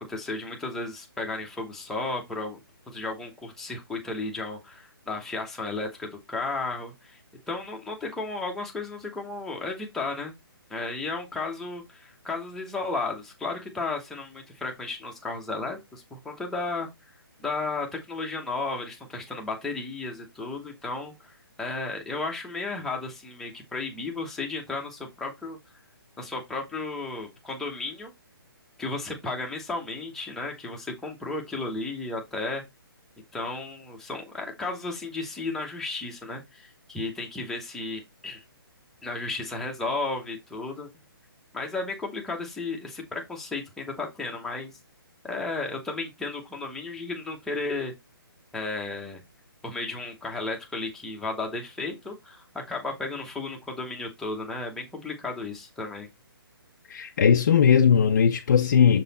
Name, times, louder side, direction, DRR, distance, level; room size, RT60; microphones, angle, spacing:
voice 1, 0.0-2.6 2.9-7.2 7.5-10.3 10.7-16.9 17.4-25.6 26.2-28.1 28.8-32.6 33.3-38.4 39.0-40.9 41.5-44.8 45.2-47.9 48.5-49.2 49.6-56.1, left 3 dB, 5° left, 0.9 m, -34 dB
voice 2, 56.9-59.0, left 7 dB, 40° left, 0.5 m, -19 dB
6.6 x 4.0 x 4.1 m
hypercardioid pair, 165°, 13 cm